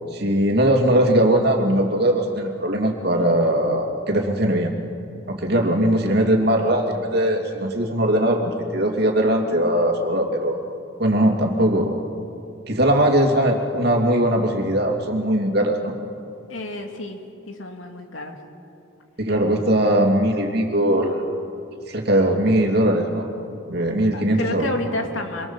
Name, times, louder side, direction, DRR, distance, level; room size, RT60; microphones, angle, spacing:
voice 1, 0.1-4.8 5.3-10.6 11.0-12.0 12.7-15.9 19.2-21.3 21.9-23.3 23.7-24.7, right 1 dB, 55° right, 2 dB, 2.9 m, -20 dB
voice 2, 16.5-18.4 24.1-25.5, left 1 dB, 90° left, 4 dB, 2.6 m, -30 dB
26.0 x 23.0 x 7.3 m, 2.6 s
head